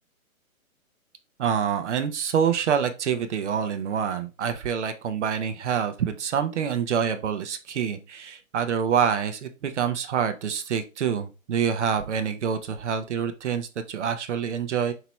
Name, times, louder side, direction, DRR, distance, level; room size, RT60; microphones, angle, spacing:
voice 1, 1.4-14.9, right 7 dB, 55° right, 8 dB, 0.7 m, -26 dB
5.6 x 2.9 x 3.0 m, 0.31 s
hypercardioid pair, 150°, 43 cm